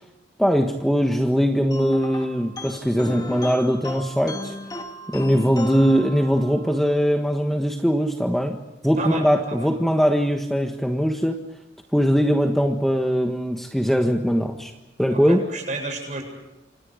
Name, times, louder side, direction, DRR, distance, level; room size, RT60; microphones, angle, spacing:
voice 1, 0.4-4.5 5.1-8.6 8.8-11.4 11.9-14.7 15.0-15.4, equal, ahead, 3 dB, 1.4 m, -21 dB
sound 1, 1.7-6.8, equal, 20° left, 2.5 m, -34 dB
voice 2, 9.0-9.7 15.1-16.2, right 2 dB, 40° right, 2 dB, 8.0 m, -31 dB
28.5 x 26.0 x 5.1 m, 0.96 s
head